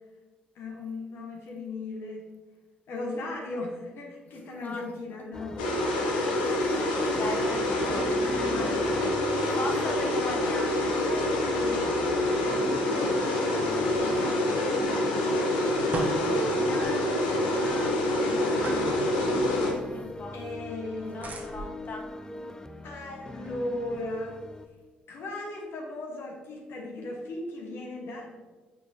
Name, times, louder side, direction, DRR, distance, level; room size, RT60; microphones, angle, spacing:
voice 1, 0.5-2.3 2.9-5.6 8.4-8.8 9.5-9.9 11.0-15.4 16.1-19.0 20.3-21.2 22.8-24.4 25.1-28.4, left 2 dB, 60° left, -1 dB, 1.3 m, -38 dB
voice 2, 5.3-5.7 6.0-6.1 6.4-8.1 8.6-9.2 9.5-10.9 13.8-16.5 19.9-20.4 21.1-22.0, left 2 dB, 40° left, 2 dB, 1.1 m, -40 dB
sound 1, 5.3-24.7, left 2 dB, 15° left, 0.4 m, -40 dB
sound 2, 5.6-19.7, left 1 dB, 80° left, 0.8 m, -26 dB
sound 3, 15.0-24.9, right 2 dB, 40° right, 1.1 m, -43 dB
7.4 x 4.6 x 2.8 m, 1.3 s
figure-of-eight pair, 45°, 4 cm